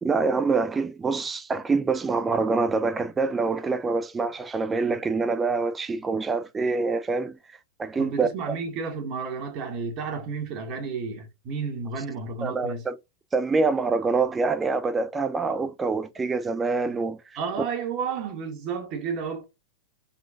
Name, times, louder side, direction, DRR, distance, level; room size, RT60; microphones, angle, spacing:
voice 1, 0.0-7.4 7.8-8.3 12.4-13.0 13.3-17.2, right 4 dB, 15° right, 0.5 m, -25 dB
voice 2, 8.0-12.8 17.3-19.4, right 5 dB, 45° right, 1.6 m, -32 dB
4.4 x 4.0 x 2.3 m
hypercardioid pair, 105°, 0 cm